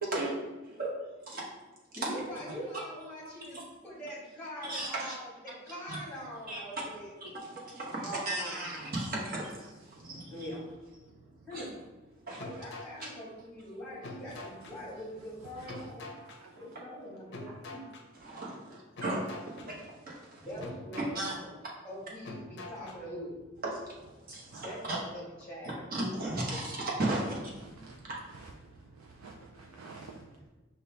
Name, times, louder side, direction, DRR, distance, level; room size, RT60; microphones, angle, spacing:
voice 1, 1.9-3.6 3.8-7.1 8.0-8.7 10.1-10.7 11.4-11.7 12.4-16.1 16.6-17.8 20.4-21.5 21.8-23.3 24.6-25.8, equal, 5° left, -6 dB, 1.2 m, -43 dB
voice 2, 4.7-5.2 5.9-6.0 6.5-6.6 7.2-10.5 11.5-11.6 12.3-12.6 13.0-13.1 18.1-20.5 21.1-21.4 23.6-25.0 25.9-27.9, right 2 dB, 45° right, -4 dB, 0.9 m, -36 dB
voice 3, 9.9-10.4 11.1-11.5 14.3-14.8 15.5-16.8 17.1-17.6 18.3-18.4 22.6-22.7 24.3-24.7 27.6-30.5, right 3 dB, 90° right, 0 dB, 0.4 m, -52 dB
sound 1, 12.4-13.1 14.0-14.7 15.7-16.4 17.3-18.0 19.0-19.7 20.6-21.3 22.2-23.0, left 2 dB, 55° left, 0.5 m, -44 dB
5.2 x 2.2 x 3.3 m, 1.2 s
head